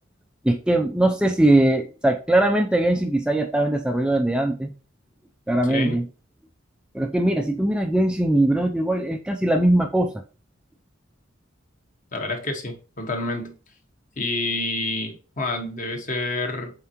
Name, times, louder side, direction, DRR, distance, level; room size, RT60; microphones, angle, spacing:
voice 1, 0.4-4.7 5.5-6.1 6.9-10.1, right 1 dB, 5° right, 0.4 m, -21 dB
voice 2, 5.7-6.0 12.1-13.5 14.2-16.7, left 2 dB, 40° left, 1.4 m, -28 dB
7.1 x 4.5 x 2.9 m
head